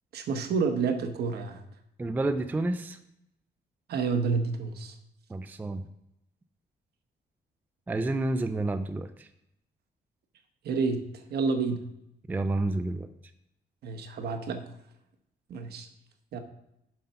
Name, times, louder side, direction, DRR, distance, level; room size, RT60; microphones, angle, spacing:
voice 1, 0.1-1.6 3.9-4.9 10.6-11.0 11.3-11.8 13.8-14.6 15.5-15.9 16.3-16.4, right 4 dB, 65° right, 6 dB, 1.1 m, -29 dB
voice 2, 2.0-3.0 5.3-5.8 7.9-9.3 12.3-13.1, right 2 dB, 10° right, 9 dB, 0.3 m, -29 dB
7.3 x 5.5 x 5.7 m, 0.81 s
cardioid pair, 180°, 18 cm